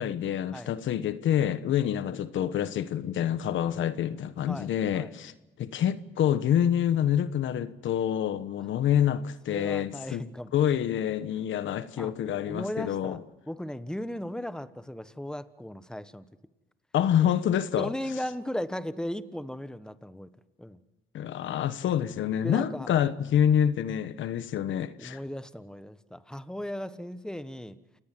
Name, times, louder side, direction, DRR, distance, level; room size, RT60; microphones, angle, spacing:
voice 1, 0.0-5.3 5.6-10.2 10.5-13.2 16.9-17.9 21.1-25.2, left 10 dB, 75° left, 1.3 m, -27 dB
voice 2, 9.5-10.5 12.0-12.1 12.4-13.2 13.5-16.3 17.2-17.3 17.8-20.3 20.6-20.8 22.4-22.9 25.0-27.8, left 1 dB, 5° left, 1.3 m, -37 dB
28.5 x 18.5 x 7.7 m
cardioid pair, 90°, 20 cm